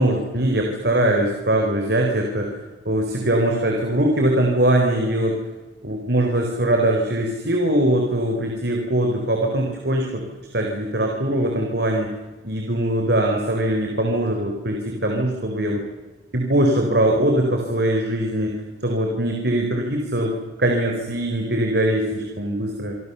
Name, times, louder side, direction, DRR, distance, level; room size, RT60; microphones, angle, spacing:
voice 1, 0.0-2.5 2.9-5.4 5.8-10.2 10.5-12.1 12.4-15.8 16.3-18.5 18.8-23.0, right 1 dB, 55° right, 2 dB, 4.1 m, -21 dB
27.0 x 25.5 x 7.0 m, 1.2 s
head